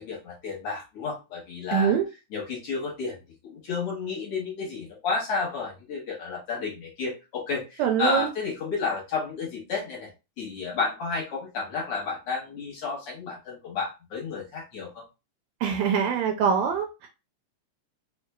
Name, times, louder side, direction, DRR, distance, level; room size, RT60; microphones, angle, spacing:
voice 1, 0.0-1.9 2.3-3.2 3.4-10.1 10.4-15.0, left 4 dB, 60° left, -3 dB, 1.7 m, -31 dB
voice 2, 1.7-2.0 7.8-8.3 15.6-17.1, right 8 dB, 80° right, 4 dB, 1.7 m, -24 dB
4.7 x 2.6 x 2.2 m, 0.27 s
omnidirectional pair, 3.5 m